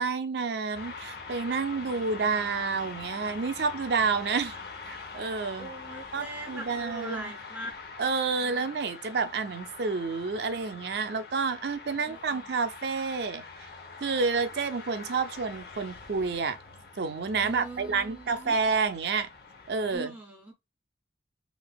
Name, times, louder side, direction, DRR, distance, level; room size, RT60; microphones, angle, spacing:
voice 1, 0.0-4.5 4.8-5.7 6.1-7.3 8.0-13.4 14.0-16.6 17.0-19.3 19.7-20.1, right 4 dB, 60° right, 0.4 m, -29 dB
sound 1, 0.7-20.0, left 4 dB, 55° left, 0.7 m, -44 dB
voice 2, 5.6-7.7 8.4-8.7 11.9-12.5 17.4-18.5 19.9-20.5, right 2 dB, 10° right, 0.5 m, -41 dB
3.3 x 2.8 x 2.2 m
head